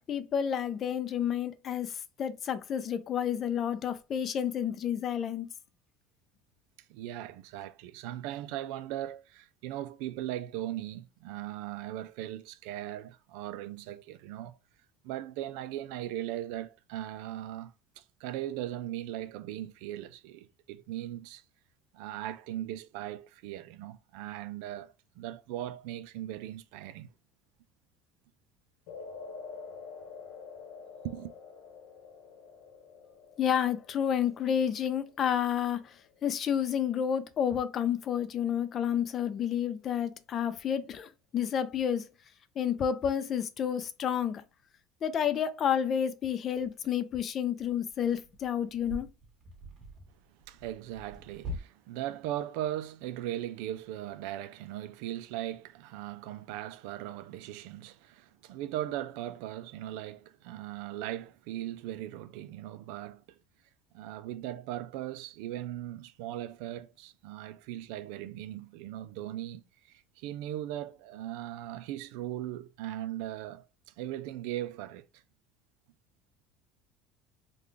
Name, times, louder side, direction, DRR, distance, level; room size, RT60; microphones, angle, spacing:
voice 1, 0.1-5.5 33.4-36.0 36.2-42.1 42.6-44.4 45.0-49.1, left 8 dB, 35° left, 0.5 m, -30 dB
voice 2, 6.9-14.6 15.0-21.4 21.9-27.1 31.0-31.3 50.5-63.4 63.9-73.7 74.0-75.1, right 13 dB, 80° right, 0.4 m, -39 dB
sound 1, 28.9-37.2, left 5 dB, 75° left, 1.1 m, -48 dB
sound 2, 46.6-46.7 47.5-51.6, equal, 40° right, 1.4 m, -45 dB
3.7 x 2.3 x 3.2 m
cardioid pair, 145°, 0 cm